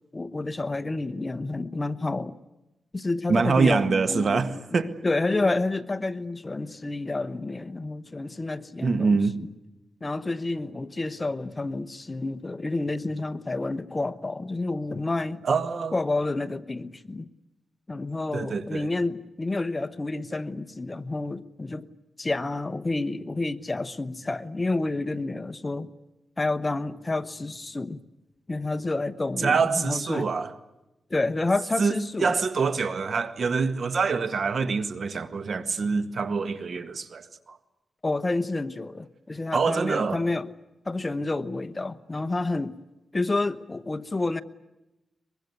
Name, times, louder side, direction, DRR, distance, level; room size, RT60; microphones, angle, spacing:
voice 1, 0.1-2.3 2.9-9.2 10.0-15.4 15.9-17.3 17.9-21.9 22.2-25.9 26.4-28.0 28.5-30.3 31.1-32.3 38.0-40.5 40.9-42.8 43.1-44.4, left 2 dB, 25° left, 1.0 m, -29 dB
voice 2, 3.3-5.0 8.8-9.4 15.4-16.0 18.3-18.9 29.4-30.5 31.8-31.9 32.2-37.6 39.5-40.2, right 5 dB, 60° right, 1.8 m, -25 dB
23.5 x 22.0 x 9.6 m
cardioid pair, 85°, 0 cm